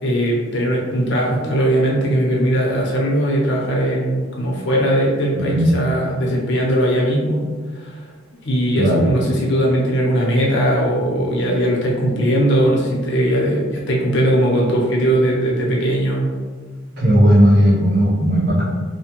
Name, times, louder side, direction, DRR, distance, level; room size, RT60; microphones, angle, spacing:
voice 1, 0.0-7.4 7.7-8.0 8.4-16.3, right 1 dB, 65° left, -2 dB, 0.6 m, -19 dB
voice 2, 5.3-5.7 8.7-9.1 17.0-18.6, equal, 50° right, -6 dB, 0.9 m, -15 dB
2.7 x 2.2 x 3.0 m, 1.5 s
head